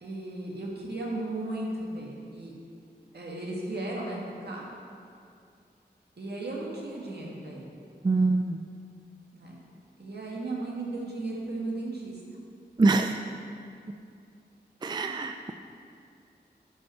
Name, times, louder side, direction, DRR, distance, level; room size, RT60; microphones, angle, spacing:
voice 1, 0.0-2.5 3.1-4.2 4.4-4.7 6.2-7.7 9.3-9.5 10.0-12.1 15.0-15.2, right 2 dB, 70° right, -4 dB, 1.8 m, -35 dB
voice 2, 8.0-8.6 12.8-13.2 14.8-15.5, right 3 dB, 25° right, 6 dB, 0.3 m, -24 dB
11.0 x 5.3 x 4.3 m, 2.4 s
wide cardioid pair, 70°, 18 cm